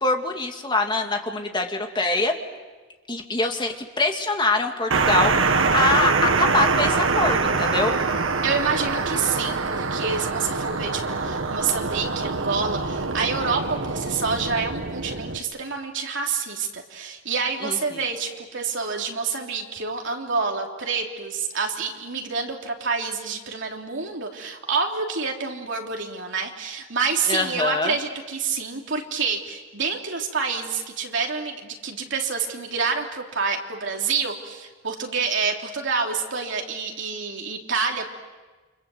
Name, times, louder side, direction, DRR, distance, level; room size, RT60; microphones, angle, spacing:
voice 1, 0.0-2.3 3.1-8.0 17.6-18.0 27.3-27.9, left 2 dB, 25° left, 4 dB, 2.2 m, -24 dB
sound 1, 4.9-15.4, right 4 dB, 85° right, 1.5 m, -24 dB
voice 2, 8.4-38.1, right 5 dB, 70° right, 1 dB, 3.3 m, -27 dB
29.0 x 26.0 x 7.9 m, 1.3 s
head